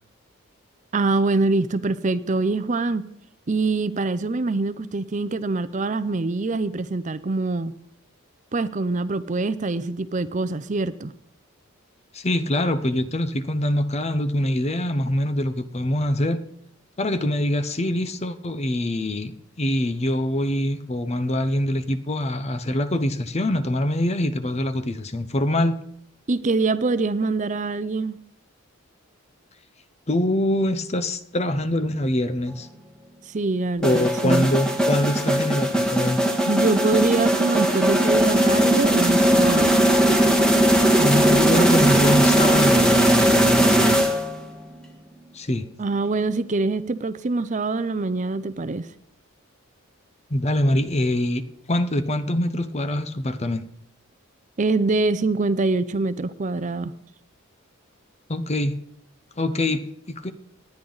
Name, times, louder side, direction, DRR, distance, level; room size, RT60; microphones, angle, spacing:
voice 1, 0.9-3.1 3.5-7.7 8.5-11.1 26.3-28.2 33.3-34.5 36.5-39.8 45.8-48.9 54.6-56.9, right 3 dB, 35° right, 0.5 m, -24 dB
voice 2, 12.1-16.4 17.0-25.8 30.1-32.7 33.8-36.2 41.0-44.0 45.3-45.7 50.3-51.4 51.7-53.6 58.3-58.7 59.4-60.3, left 1 dB, 30° left, 0.8 m, -24 dB
sound 1, 33.8-44.5, right 1 dB, 5° left, 1.5 m, -19 dB
18.5 x 10.5 x 4.0 m
head